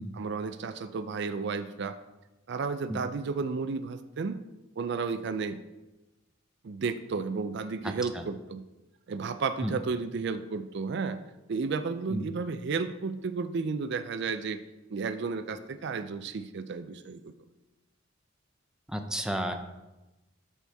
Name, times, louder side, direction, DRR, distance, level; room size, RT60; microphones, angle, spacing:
voice 1, 0.1-2.0 2.5-4.4 4.8-5.6 6.6-8.6 9.1-11.2 11.5-14.6 14.9-17.3, right 4 dB, 60° right, 11 dB, 0.4 m, -32 dB
voice 2, 7.8-8.2 9.6-9.7 12.1-12.2 18.9-19.5, equal, 5° right, 5 dB, 0.5 m, -32 dB
12.5 x 4.3 x 3.4 m, 1.0 s
head